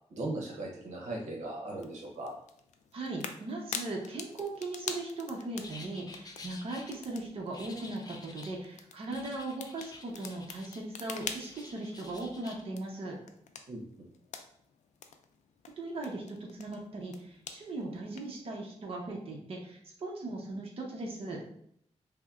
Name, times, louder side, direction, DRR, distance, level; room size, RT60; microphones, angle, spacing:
voice 1, 0.1-2.4 13.7-14.1, right 2 dB, 90° right, 0 dB, 0.8 m, -38 dB
sound 1, 1.8-18.4, left 6 dB, 90° left, 0.4 m, -47 dB
voice 2, 2.9-13.2 15.8-21.4, right 2 dB, 50° right, -1 dB, 0.8 m, -38 dB
sound 2, 5.6-6.9 7.5-8.6 9.1-10.8 11.2-12.6, left 3 dB, 35° left, 0.5 m, -50 dB
5.5 x 2.1 x 2.4 m, 0.69 s
wide cardioid pair, 115°, 12 cm